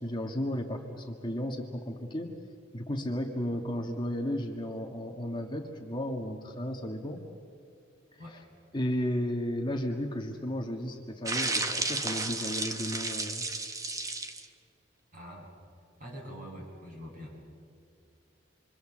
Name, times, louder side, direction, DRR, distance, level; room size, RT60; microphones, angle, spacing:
voice 1, 0.0-2.3 2.7-7.2 8.1-8.4 8.7-13.5, equal, 25° left, 2 dB, 1.6 m, -34 dB
sound 1, 11.3-14.5, right 3 dB, 15° right, 1.1 m, -32 dB
voice 2, 15.1-15.5 16.0-17.3, equal, 45° right, -2 dB, 7.6 m, -44 dB
27.0 x 24.0 x 7.4 m, 2.3 s
head